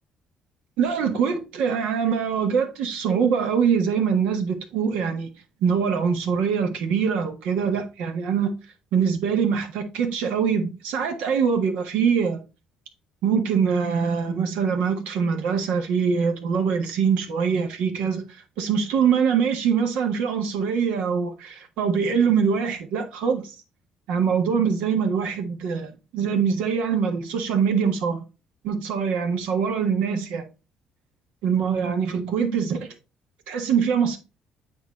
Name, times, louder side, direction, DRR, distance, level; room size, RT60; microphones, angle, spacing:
voice 1, 0.8-5.3 5.6-8.5 8.9-12.4 13.2-23.5 24.1-28.2 28.6-30.4 31.4-32.8 33.5-34.2, right 6 dB, 85° right, 1.5 m, -23 dB
8.7 x 3.1 x 4.2 m
cardioid pair, 90°, 2 cm